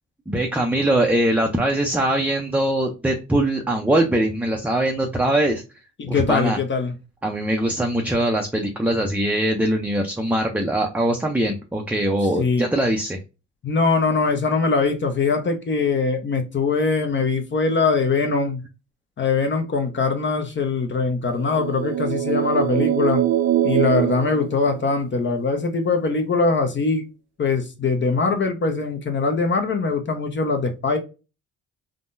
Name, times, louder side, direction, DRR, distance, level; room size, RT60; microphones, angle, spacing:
voice 1, 0.3-5.6 6.1-6.6 7.2-13.2, right 1 dB, 5° right, 0.5 m, -22 dB
voice 2, 6.0-6.9 12.4-12.7 13.6-18.6 19.2-23.3 23.6-27.0 27.4-31.0, left 4 dB, 40° left, 0.7 m, -22 dB
sound 1, 21.4-25.2, right 12 dB, 60° right, 0.6 m, -23 dB
3.6 x 2.2 x 2.5 m
cardioid pair, 90°, 30 cm